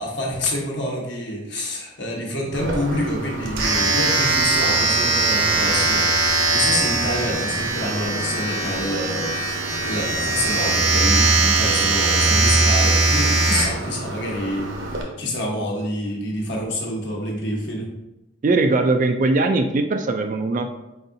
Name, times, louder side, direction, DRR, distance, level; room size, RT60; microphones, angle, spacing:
voice 1, 0.0-17.9, left 1 dB, 60° left, -1 dB, 1.1 m, -27 dB
Domestic sounds home sounds, 2.5-15.0, right 3 dB, 75° right, 0.9 m, -21 dB
voice 2, 18.4-20.7, right 3 dB, 40° right, 7 dB, 0.3 m, -20 dB
4.5 x 4.1 x 2.6 m, 0.96 s
head